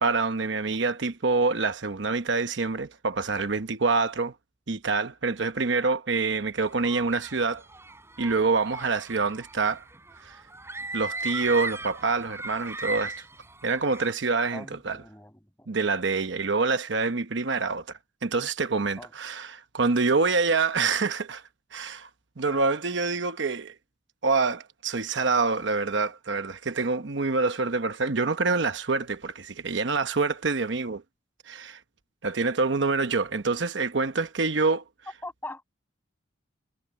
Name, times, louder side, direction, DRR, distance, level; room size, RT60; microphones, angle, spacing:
voice 1, 0.0-4.3 4.7-7.6 8.2-9.8 10.2-10.4 10.9-13.2 13.6-15.0 15.7-17.9 18.2-21.4 21.7-22.1 22.4-23.7 24.2-31.0 31.5-31.8 32.2-34.8, right 4 dB, 65° right, 0.9 m, -26 dB
sound 1, 6.6-14.1, right 2 dB, 15° right, 5.5 m, -37 dB
voice 2, 14.5-15.7 19.0-19.1 35.2-35.6, left 2 dB, 10° left, 7.8 m, -41 dB
head